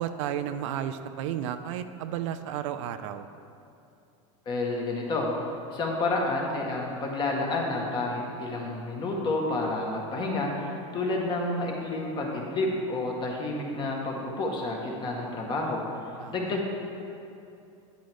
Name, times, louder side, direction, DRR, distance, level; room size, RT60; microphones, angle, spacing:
voice 1, 0.0-3.3 16.2-16.6, right 10 dB, 70° right, 10 dB, 0.5 m, -33 dB
voice 2, 4.4-5.3 5.7-15.8 16.3-16.7, left 2 dB, 30° left, -1 dB, 1.5 m, -30 dB
9.1 x 8.8 x 3.6 m, 2.6 s
supercardioid pair, 140°, 16 cm